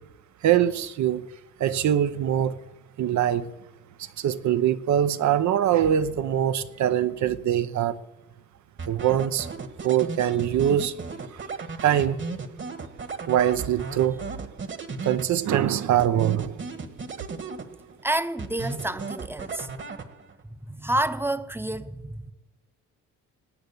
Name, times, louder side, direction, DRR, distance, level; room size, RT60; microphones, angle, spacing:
voice 1, 0.4-1.3 1.6-2.6 3.0-3.5 4.0-8.0 8.9-9.5 9.8-11.0 11.3-11.4 11.8-12.2 13.3-14.2 15.0-16.6, right 10 dB, 70° right, 0.9 m, -23 dB
sound 1, 8.8-15.6 16.0-18.0 18.4-20.4, right 4 dB, 40° right, 1.6 m, -36 dB
voice 2, 18.0-19.7 20.5-22.3, right 1 dB, 5° right, 0.8 m, -29 dB
19.0 x 7.9 x 8.5 m
cardioid pair, 90°, 30 cm